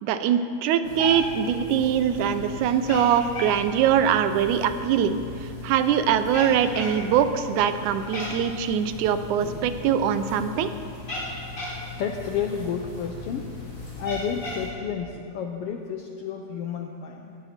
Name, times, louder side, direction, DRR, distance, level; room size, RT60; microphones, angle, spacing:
voice 1, 0.0-5.2 5.6-10.7, right 8 dB, 90° right, 10 dB, 2.2 m, -23 dB
Cat, 0.8-14.7, left 2 dB, 25° left, 4.2 m, -36 dB
voice 2, 12.0-13.6 14.0-17.4, left 7 dB, 75° left, 4 dB, 1.3 m, -31 dB
18.0 x 13.5 x 4.3 m, 2.4 s
omnidirectional pair, 3.4 m